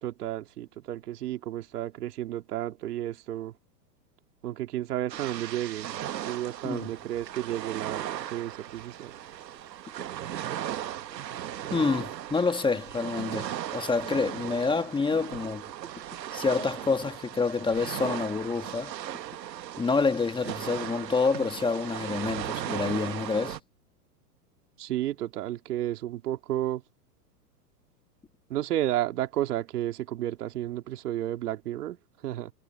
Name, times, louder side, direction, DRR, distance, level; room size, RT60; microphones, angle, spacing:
voice 1, 0.0-3.5 4.4-5.9 6.2-9.1 24.8-26.8 28.5-32.0 32.2-32.5, right 13 dB, 65° right, 2.8 m, -32 dB
sound 1, 5.1-23.6, right 11 dB, 85° right, 1.3 m, -37 dB
voice 2, 11.7-15.6 16.3-18.9 19.8-23.6, left 4 dB, 10° left, 1.9 m, -27 dB
hypercardioid pair, 125°, 49 cm